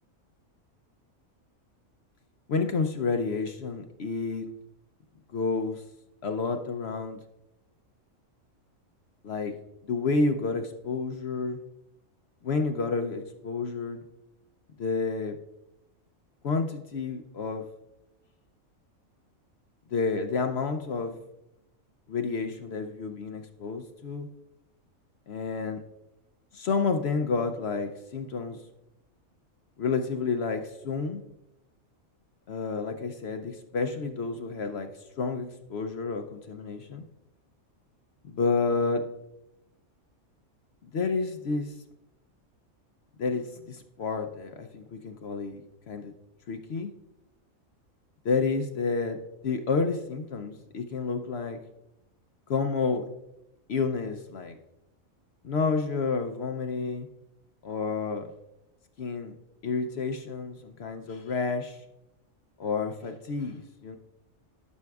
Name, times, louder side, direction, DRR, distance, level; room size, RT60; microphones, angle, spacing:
voice 1, 2.5-4.4 5.3-5.8 6.2-7.2 9.2-9.5 9.9-11.6 12.4-14.0 14.8-15.4 16.4-17.6 19.9-21.2 22.1-24.3 25.3-25.8 26.5-28.6 29.8-31.2 32.5-34.9 35.2-37.0 38.2-39.1 40.8-41.7 43.2-45.6 45.9-46.1 46.5-46.9 48.2-49.2 49.4-51.6 52.5-53.0 53.7-54.6 55.4-57.1 57.6-58.3 59.0-59.3 59.6-61.8 62.6-64.0, left 4 dB, 60° left, 6 dB, 0.8 m, -30 dB
12.5 x 6.3 x 2.3 m, 0.89 s
omnidirectional pair, 1.4 m